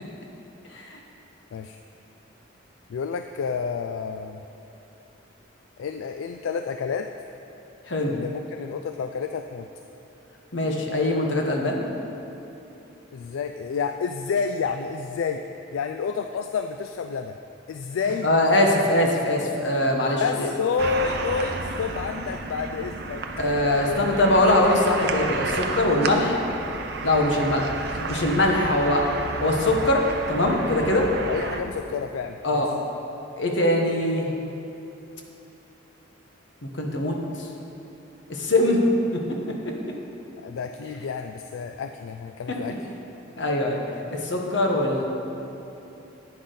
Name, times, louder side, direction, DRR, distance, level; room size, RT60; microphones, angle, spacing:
voice 1, 2.9-4.4 5.8-7.1 8.0-9.7 13.1-15.4 15.7-17.4 17.7-18.3 18.6-18.8 20.2-23.2 23.6-24.0 31.2-32.6 40.4-42.7, left 6 dB, 85° left, 6 dB, 0.3 m, -29 dB
voice 2, 10.5-11.8 18.2-20.5 23.4-26.4 27.0-27.7 28.1-29.1 29.4-31.1 32.4-32.7 33.4-34.4 36.6-37.5 38.3-38.8 39.1-39.5 42.5-42.6 43.4-43.8 44.1-45.0, left 1 dB, 65° left, 1 dB, 1.1 m, -22 dB
sound 1, 20.8-31.6, right 3 dB, 50° right, 0.6 m, -32 dB
10.5 x 8.7 x 3.9 m, 2.9 s
head